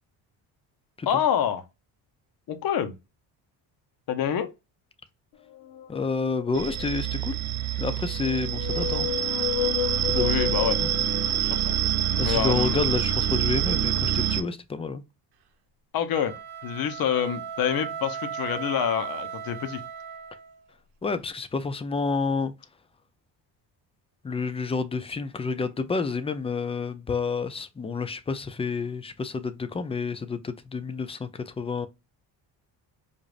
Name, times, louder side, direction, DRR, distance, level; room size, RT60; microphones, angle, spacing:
voice 1, 1.1-1.6 2.5-2.9 4.1-4.5 10.1-10.8 11.4-11.6 12.2-12.9 15.9-16.3 16.6-19.8, left 9 dB, 55° left, 0.9 m, -27 dB
sound 1, 5.5-7.1 8.0-11.9, left 12 dB, 85° left, 0.7 m, -32 dB
voice 2, 5.9-7.4 7.8-9.1 10.1-10.5 10.8-10.9 12.2-15.0 21.0-22.5 24.2-31.9, left 4 dB, 15° left, 0.4 m, -29 dB
sound 2, 6.5-14.4, right 10 dB, 40° right, 0.6 m, -26 dB
sound 3, 16.0-20.6, right 8 dB, 65° right, 0.9 m, -36 dB
4.8 x 2.6 x 2.5 m
cardioid pair, 115°, 41 cm